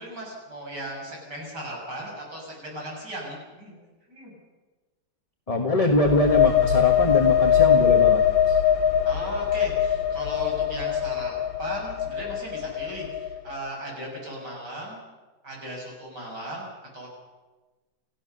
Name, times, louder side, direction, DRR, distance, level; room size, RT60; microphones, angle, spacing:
voice 1, 0.0-3.8 4.1-4.3 9.1-11.3 11.6-15.0 15.4-16.7 16.9-17.1, right 1 dB, 55° right, -2 dB, 7.9 m, -37 dB
voice 2, 5.5-8.6, left 2 dB, 20° left, 4 dB, 1.3 m, -23 dB
sound 1, 5.9-13.5, left 9 dB, 75° left, 2.2 m, -22 dB
30.0 x 15.5 x 6.8 m, 1.2 s
omnidirectional pair, 2.2 m